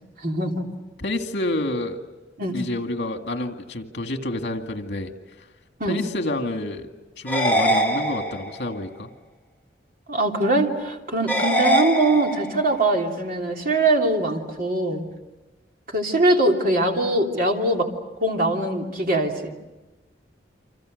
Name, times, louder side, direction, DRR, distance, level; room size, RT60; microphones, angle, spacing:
voice 1, 0.2-0.7 2.4-2.6 5.8-6.0 10.1-15.1 15.9-17.9 18.2-19.5, right 2 dB, 50° right, 1 dB, 3.1 m, -22 dB
voice 2, 1.0-2.0 2.5-5.1 5.9-6.9 7.2-9.1, left 1 dB, 70° left, 5 dB, 2.2 m, -28 dB
sound 1, 7.3-8.7 11.3-12.7, equal, 10° left, 1.9 m, -23 dB
29.0 x 26.0 x 6.6 m, 1.1 s
head